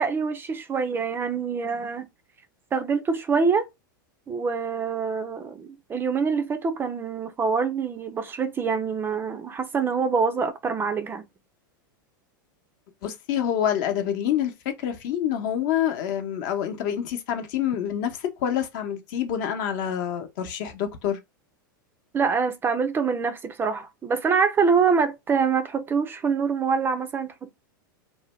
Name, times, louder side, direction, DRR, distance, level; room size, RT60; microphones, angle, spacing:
voice 1, 0.0-2.1 2.7-3.7 4.3-11.2 22.1-27.5, right 5 dB, 20° right, 0.3 m, -25 dB
voice 2, 13.0-21.2, left 9 dB, 60° left, 0.7 m, -27 dB
2.6 x 2.1 x 3.0 m
hypercardioid pair, 120°, 11 cm